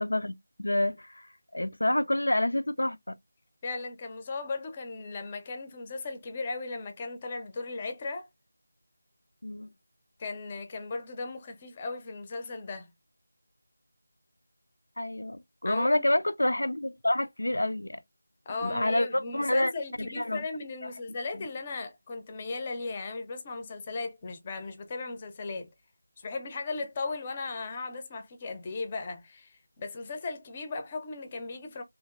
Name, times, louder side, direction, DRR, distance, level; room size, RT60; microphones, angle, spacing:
voice 1, 0.0-3.2 9.4-9.7 15.0-18.0 18.6-19.7 20.0-20.4 21.3-21.5, left 1 dB, 85° left, 0.3 m, -28 dB
voice 2, 3.6-8.3 10.2-12.9 15.6-16.0 18.5-25.7 26.2-31.8, left 3 dB, 20° left, 0.5 m, -37 dB
2.8 x 2.4 x 2.3 m
figure-of-eight pair, 170°, 0 cm